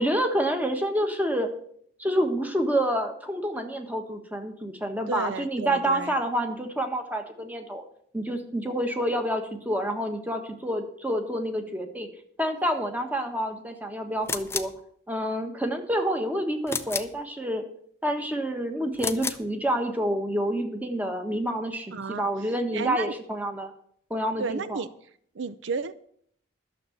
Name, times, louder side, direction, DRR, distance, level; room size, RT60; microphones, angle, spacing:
voice 1, 0.0-1.5 2.0-7.8 8.1-12.1 12.4-14.7 15.1-17.6 18.0-23.7 24.1-24.8, equal, 10° right, 1.3 m, -28 dB
voice 2, 5.1-6.1 21.9-22.3 22.7-23.1 24.4-24.9 25.4-25.9, right 4 dB, 65° right, 0.5 m, -32 dB
sound 1, 14.2-14.8 16.7-17.2 18.9-19.5, left 5 dB, 10° left, 0.5 m, -31 dB
12.0 x 7.0 x 7.8 m
head